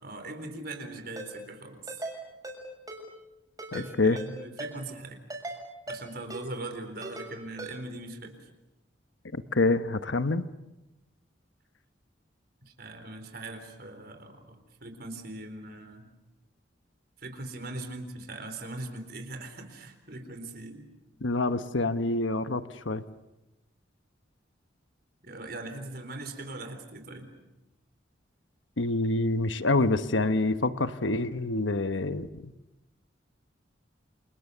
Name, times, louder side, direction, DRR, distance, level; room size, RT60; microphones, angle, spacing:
voice 1, 0.0-1.9 3.7-5.2 5.9-8.3 12.7-16.1 17.2-20.9 25.2-27.3, right 2 dB, 55° right, 7 dB, 4.1 m, -40 dB
Ringtone, 1.2-1.3 1.9-2.1 2.4-2.6 2.9-3.0 3.6-3.9 4.2-4.3 4.6-4.7 5.3-5.6 5.9-6.0 6.3-6.4 7.0-7.3 7.6-7.7, right 2 dB, 20° right, 6.7 m, -38 dB
voice 2, 3.7-4.2 9.3-10.5 21.2-23.0 28.8-32.5, left 2 dB, 80° left, 11 dB, 1.2 m, -27 dB
29.0 x 28.0 x 6.9 m, 0.98 s
head